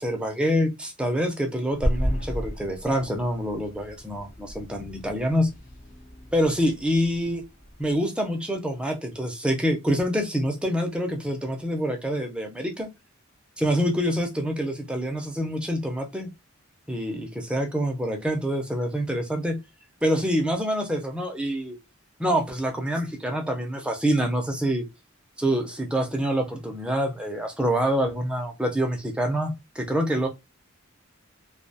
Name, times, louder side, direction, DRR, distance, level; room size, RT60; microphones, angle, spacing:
voice 1, 0.0-5.5 6.3-7.4 7.8-12.9 13.6-16.3 16.9-19.6 20.0-21.8 22.2-24.8 25.4-30.3, equal, 5° right, 0.5 m, -26 dB
sound 1, 1.7-8.0, equal, 40° left, 0.6 m, -33 dB
2.3 x 2.2 x 2.7 m
head